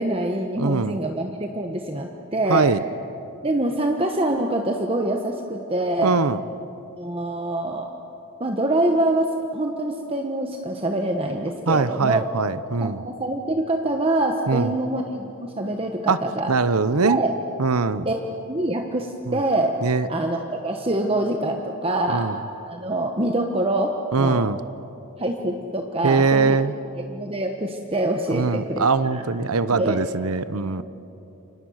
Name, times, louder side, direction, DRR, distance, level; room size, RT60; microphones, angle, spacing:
voice 1, 0.0-2.7 3.4-6.2 7.0-7.9 8.4-12.3 12.8-16.5 17.0-17.3 18.0-18.2 18.5-19.8 20.1-22.3 22.7-24.5 25.2-26.6 27.0-29.2 29.7-30.0, right 1 dB, 25° right, 3 dB, 1.2 m, -25 dB
voice 2, 0.6-1.0 2.5-2.8 6.0-6.4 11.7-13.0 14.5-14.7 16.1-16.2 16.5-17.2 17.6-18.1 19.3-19.4 19.8-20.1 22.1-22.4 24.1-24.6 26.0-26.7 28.3-30.8, right 4 dB, 85° right, 14 dB, 0.9 m, -22 dB
29.5 x 25.5 x 6.5 m, 2.9 s
head